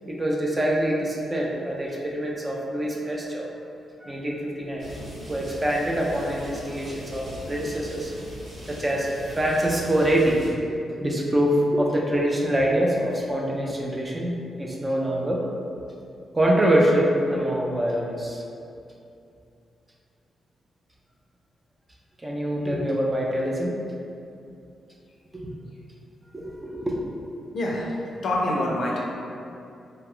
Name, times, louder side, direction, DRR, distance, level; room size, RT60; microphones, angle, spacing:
voice 1, 0.1-3.5 4.0-4.9 5.3-8.1 8.7-10.7 11.0-15.4 16.3-18.4 22.2-23.8 26.3-27.0, right 1 dB, 20° right, -2 dB, 0.3 m, -25 dB
sound 1, 4.8-10.5, equal, 45° right, 0.8 m, -40 dB
voice 2, 27.5-29.0, left 1 dB, 60° left, -3 dB, 0.5 m, -26 dB
2.4 x 2.2 x 3.4 m, 2.6 s
wide cardioid pair, 135°, 0 cm